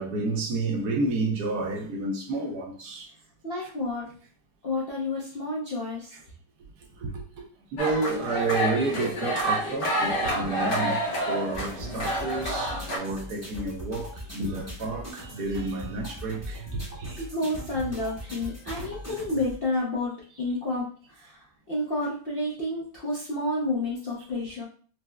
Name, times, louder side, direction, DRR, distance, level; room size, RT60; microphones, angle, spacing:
voice 1, 0.0-3.1 7.0-7.2 7.7-17.2 18.8-18.9, right 3 dB, 70° right, 1.2 m, -30 dB
voice 2, 3.4-4.1 4.6-6.1 17.2-24.6, left 2 dB, 55° left, 0.6 m, -30 dB
sound 1, 7.8-13.0, right 1 dB, 80° left, 1.7 m, -28 dB
sound 2, 11.5-19.5, right 1 dB, 10° right, 0.8 m, -40 dB
4.5 x 2.1 x 2.2 m
omnidirectional pair, 1.8 m